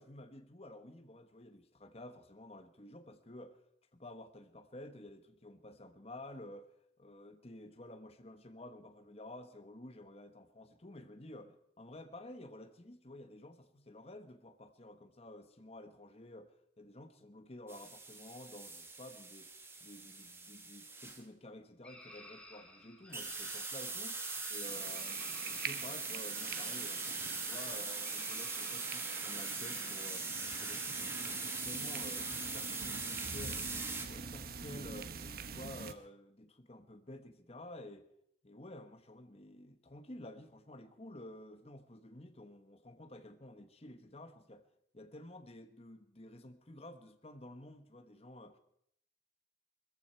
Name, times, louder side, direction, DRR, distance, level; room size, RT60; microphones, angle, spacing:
voice 1, 0.0-3.6 3.9-6.7 7.0-16.5 16.8-19.5 19.8-27.0 27.3-35.1 35.5-38.1 38.4-44.6 44.9-48.6, left 1 dB, 35° left, 1.2 m, -51 dB
sound 1, 17.7-21.2 23.1-34.1, right 3 dB, 15° right, 1.4 m, -41 dB
sound 2, 21.8-31.1, left 1 dB, 5° left, 2.4 m, -55 dB
sound 3, 24.6-35.9, right 6 dB, 55° right, 1.0 m, -45 dB
21.0 x 14.5 x 4.5 m
head